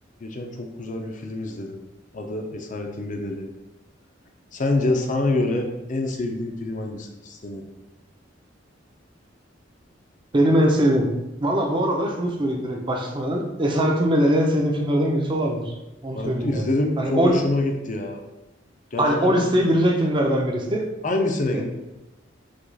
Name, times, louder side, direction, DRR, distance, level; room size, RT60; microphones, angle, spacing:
voice 1, 0.2-1.8 2.1-3.5 4.5-7.6 16.1-18.2 18.9-19.6 21.0-21.6, left 2 dB, 45° left, 3 dB, 0.6 m, -26 dB
voice 2, 10.3-11.1 11.4-15.6 16.0-16.6 17.0-17.4 19.0-20.9 21.5-21.6, equal, 25° right, 1 dB, 0.6 m, -21 dB
5.0 x 2.4 x 4.0 m, 0.97 s
head